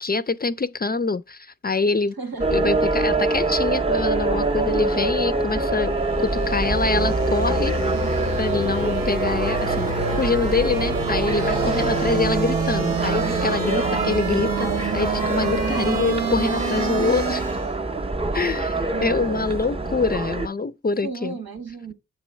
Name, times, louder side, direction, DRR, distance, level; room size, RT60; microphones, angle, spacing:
voice 1, 0.0-2.1 2.5-6.0 6.2-7.8 8.4-9.9 10.2-17.5 18.3-21.4, left 4 dB, 30° left, 0.3 m, -25 dB
voice 2, 2.2-2.8 11.6-12.0 18.9-19.4 21.0-21.9, right 4 dB, 85° right, 1.4 m, -34 dB
sound 1, 2.4-20.5, right 2 dB, 15° right, 0.6 m, -24 dB
sound 2, 5.6-17.8, right 4 dB, 70° right, 1.0 m, -29 dB
7.5 x 3.0 x 4.3 m
cardioid pair, 40°, 35 cm